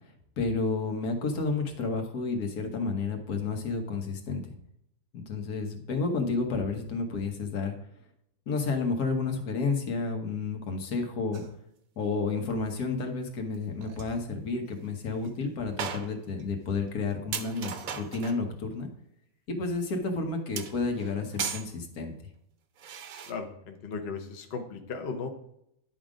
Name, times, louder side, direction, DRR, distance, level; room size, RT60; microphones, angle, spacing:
voice 1, 0.4-4.4 5.1-7.7 8.5-11.4 12.0-18.9 19.5-22.1, left 4 dB, 80° left, 4 dB, 1.6 m, -31 dB
sound 1, 11.3-11.5 13.5-13.6 13.8-14.1 14.7-14.8 15.2-15.3 15.8-16.5 16.9-17.0 17.3-18.4 20.6-21.7 22.8-23.3, right 7 dB, 70° right, 1.1 m, -37 dB
voice 2, 23.2-25.3, left 4 dB, 50° left, 5 dB, 1.0 m, -36 dB
10.5 x 3.8 x 5.0 m, 0.76 s
omnidirectional pair, 1.6 m